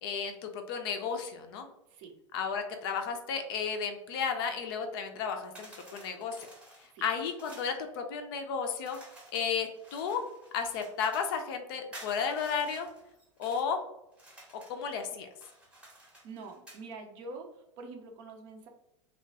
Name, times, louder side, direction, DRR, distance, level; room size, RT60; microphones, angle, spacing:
voice 1, 0.0-1.7 2.3-6.4 7.0-9.0 9.3-10.3 10.5-12.9 13.4-13.8 14.5-15.3, left 6 dB, 45° left, 5 dB, 0.5 m, -33 dB
sound 1, 5.5-7.8 8.8-11.4 11.9-13.7 14.1-14.8 15.3-16.8, right 1 dB, 5° right, 0.8 m, -52 dB
voice 2, 15.9-17.5 17.8-18.7, right 3 dB, 40° right, 4 dB, 0.5 m, -45 dB
3.0 x 2.1 x 2.7 m, 0.86 s
figure-of-eight pair, 90°, 16 cm